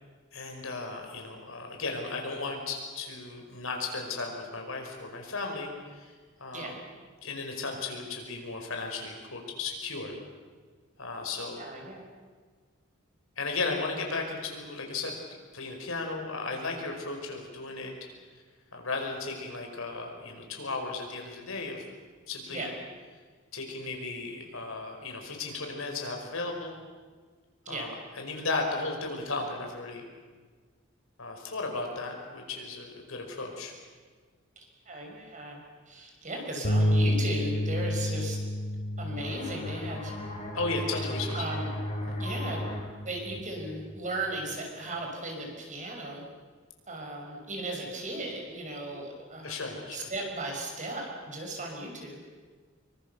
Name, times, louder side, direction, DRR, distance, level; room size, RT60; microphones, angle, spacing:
voice 1, 0.3-6.1 6.4-6.7 7.2-10.1 11.0-11.6 13.4-15.1 15.5-17.9 18.7-21.8 22.3-22.7 23.5-26.8 27.7-30.1 31.2-33.7 40.5-41.4 42.1-42.2 49.4-50.1, left 3 dB, 75° left, 2 dB, 5.1 m, -35 dB
voice 2, 11.4-12.0 22.5-22.7 27.7-27.9 34.6-35.6 35.9-38.4 39.0-40.1 41.3-41.8 42.2-42.8 43.0-46.2 46.9-52.2, right 1 dB, 40° right, 1 dB, 5.8 m, -36 dB
sound 1, 36.6-42.9, equal, 50° left, 2.1 m, -31 dB
sound 2, 39.2-44.6, equal, 30° left, 5.2 m, -37 dB
25.0 x 23.5 x 6.9 m, 1.5 s
head